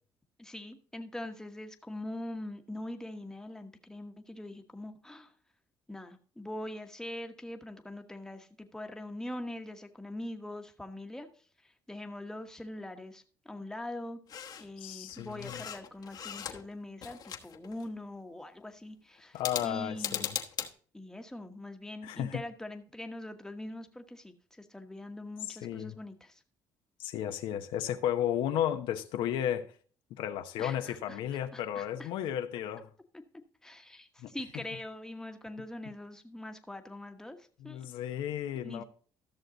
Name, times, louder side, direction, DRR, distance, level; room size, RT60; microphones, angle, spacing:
voice 1, 0.4-5.3 5.9-11.3 11.6-14.2 14.6-20.3 20.9-26.4 30.6-32.1 33.1-33.2 33.6-37.8 38.5-38.8, left 1 dB, 5° left, 1.2 m, -43 dB
sound 1, 14.3-14.7 15.1-16.7 17.0-17.9 19.3-20.7, left 8 dB, 50° left, 1.2 m, -39 dB
voice 2, 14.8-15.6 19.3-20.4 22.0-22.4 25.5-26.0 27.0-29.7 30.2-32.9 34.2-34.3 37.6-38.8, left 10 dB, 80° left, 0.9 m, -33 dB
13.5 x 6.5 x 3.9 m
cardioid pair, 90°, 9 cm